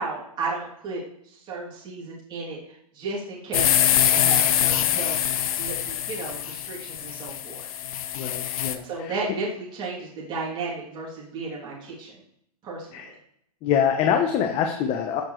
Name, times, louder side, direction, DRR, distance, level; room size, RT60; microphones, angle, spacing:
voice 1, 0.0-7.7 8.8-12.2 12.6-13.1, right 3 dB, 25° right, -5 dB, 3.1 m, -34 dB
sound 1, 3.5-8.8, left 10 dB, 65° left, 1.1 m, -24 dB
voice 2, 8.1-9.2 12.9-13.1 13.6-15.2, left 8 dB, 30° left, 4 dB, 1.1 m, -25 dB
14.0 x 7.0 x 3.3 m, 0.73 s
hypercardioid pair, 145°, 20 cm